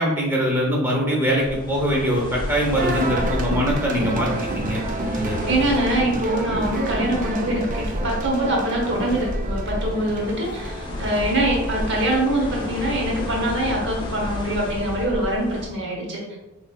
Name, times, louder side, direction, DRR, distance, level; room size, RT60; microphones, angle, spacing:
voice 1, 0.0-4.8 5.1-5.6, equal, 10° right, -2 dB, 0.7 m, -23 dB
sound 1, 1.3-15.7, left 1 dB, 20° left, 0.5 m, -31 dB
sound 2, 2.8-13.5, right 2 dB, 40° right, 0.4 m, -30 dB
voice 2, 5.4-16.2, right 1 dB, 60° right, -1 dB, 0.9 m, -24 dB
4.1 x 3.1 x 2.2 m, 1.0 s
head